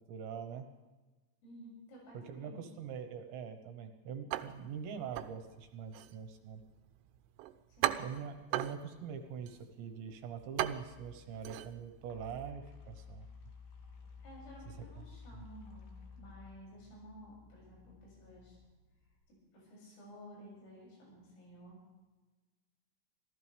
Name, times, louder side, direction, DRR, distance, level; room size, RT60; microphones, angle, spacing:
voice 1, 0.1-0.7 2.3-6.6 8.0-13.3, right 7 dB, 70° right, 6 dB, 3.2 m, -43 dB
voice 2, 1.4-2.6 7.7-8.0 14.2-18.6 19.3-21.8, equal, 80° left, -3 dB, 9.7 m, -54 dB
sound 1, 4.3-12.5, right 14 dB, 90° right, 3.2 m, -40 dB
sound 2, 10.6-19.2, left 5 dB, 60° left, 4.3 m, -54 dB
25.5 x 15.5 x 3.5 m, 1.2 s
omnidirectional pair, 5.6 m